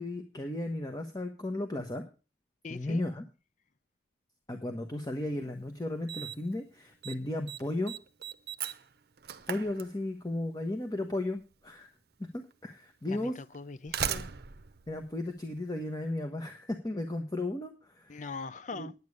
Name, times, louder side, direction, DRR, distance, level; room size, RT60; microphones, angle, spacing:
voice 1, 0.0-2.1 2.7-3.2 4.5-7.9 9.5-11.9 12.3-13.3 14.9-18.2 18.7-18.9, left 1 dB, 20° left, 1.2 m, -35 dB
voice 2, 2.6-3.0 13.1-14.3 18.1-18.9, left 4 dB, 40° left, 0.7 m, -41 dB
Slam, 5.3-5.4 6.1-6.6 6.8-7.2 7.5-10.4 11.5-11.6 12.5-12.6 13.5-15.9, right 8 dB, 55° right, 0.7 m, -38 dB
9.6 x 9.3 x 6.5 m
head